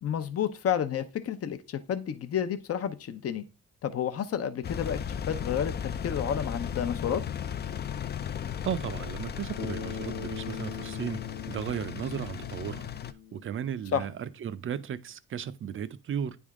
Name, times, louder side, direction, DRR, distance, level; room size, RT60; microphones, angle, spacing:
voice 1, 0.0-3.4 3.8-5.0 5.3-5.7 6.0-7.2 13.9-14.0, left 8 dB, 50° left, 0.8 m, -30 dB
Engine, 4.6-13.1, left 8 dB, 35° left, 0.4 m, -36 dB
voice 2, 8.6-12.9 13.3-16.4, right 8 dB, 45° right, 0.5 m, -35 dB
Bass guitar, 9.6-14.0, left 6 dB, 85° left, 0.8 m, -41 dB
9.3 x 3.5 x 3.6 m
cardioid pair, 90°, 30 cm